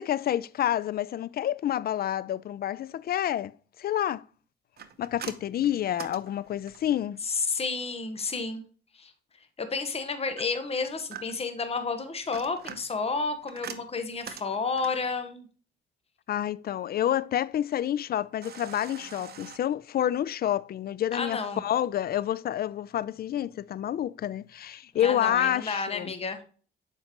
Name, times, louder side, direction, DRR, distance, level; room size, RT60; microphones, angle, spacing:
voice 1, 0.0-3.5 3.8-4.2 5.0-7.2 16.3-26.1, left 11 dB, 50° left, 0.4 m, -28 dB
sound 1, 4.8-7.0 10.4-11.6 12.1-15.1 18.4-19.6, right 8 dB, 55° right, 0.8 m, -44 dB
voice 2, 7.2-8.6 8.9-9.1 9.6-15.5 21.1-21.6 25.0-26.4, left 4 dB, 30° left, 1.1 m, -31 dB
7.3 x 5.2 x 3.0 m
cardioid pair, 90°, 20 cm